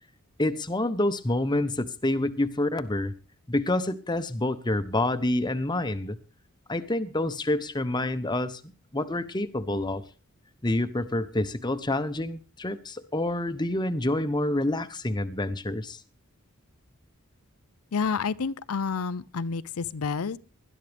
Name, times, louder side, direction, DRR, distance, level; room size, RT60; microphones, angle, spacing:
voice 1, 0.4-3.1 3.5-6.2 6.7-10.0 10.6-16.0, left 1 dB, 20° left, 11 dB, 0.9 m, -28 dB
voice 2, 17.9-20.4, left 5 dB, 80° left, 16 dB, 0.6 m, -29 dB
20.0 x 12.0 x 3.5 m, 0.33 s
head